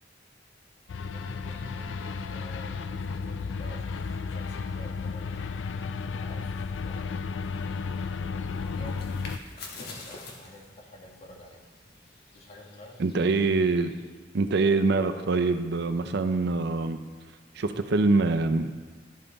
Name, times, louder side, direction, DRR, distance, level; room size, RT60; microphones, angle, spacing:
sound 1, 0.9-9.4, left 5 dB, 75° left, 0.4 m, -33 dB
voice 1, 1.1-5.6 6.2-6.5 6.8-7.2 8.3-11.6 12.3-13.0, left 1 dB, 40° left, -1 dB, 1.5 m, -49 dB
sound 2, 8.4-14.1, left 3 dB, 60° left, 1.3 m, -47 dB
voice 2, 13.0-13.9 14.3-17.0 17.5-18.7, right 3 dB, 65° right, 9 dB, 0.5 m, -24 dB
12.0 x 5.5 x 4.0 m, 1.3 s
head